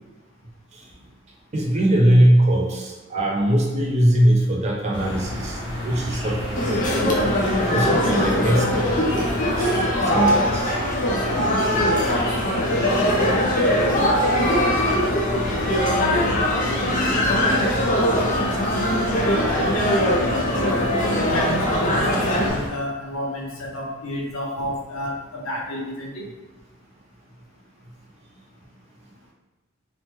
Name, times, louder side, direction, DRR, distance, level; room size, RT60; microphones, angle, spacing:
voice 1, 1.5-5.6 5.8-7.2 7.7-9.3 9.6-9.7 10.1-10.7, right 1 dB, 35° right, 0 dB, 0.4 m, -20 dB
sound 1, 4.9-22.7, left 1 dB, 25° left, 1.2 m, -30 dB
sound 2, 6.5-22.5, equal, 40° left, 0.5 m, -21 dB
voice 2, 18.7-20.0 20.4-20.9 21.2-26.3, left 1 dB, 85° left, -1 dB, 0.6 m, -30 dB
2.9 x 2.1 x 3.1 m, 1.1 s
head